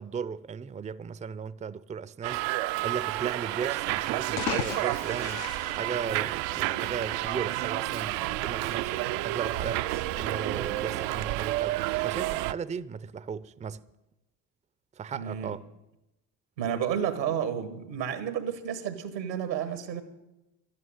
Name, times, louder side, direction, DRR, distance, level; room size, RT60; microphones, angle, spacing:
voice 1, 0.0-2.5 2.8-9.8 10.1-13.8 15.0-15.7, right 6 dB, 15° right, 0.5 m, -36 dB
Subway metro underground, 2.2-12.5, right 17 dB, 65° right, 0.6 m, -30 dB
sound 1, 4.2-6.8, left 13 dB, 65° left, 0.7 m, -37 dB
sound 2, 5.7-11.3, left 5 dB, 90° left, 1.9 m, -50 dB
voice 2, 15.1-15.5 16.6-20.0, right 9 dB, 90° right, 1.5 m, -31 dB
12.5 x 9.7 x 9.1 m
hypercardioid pair, 55°, 50 cm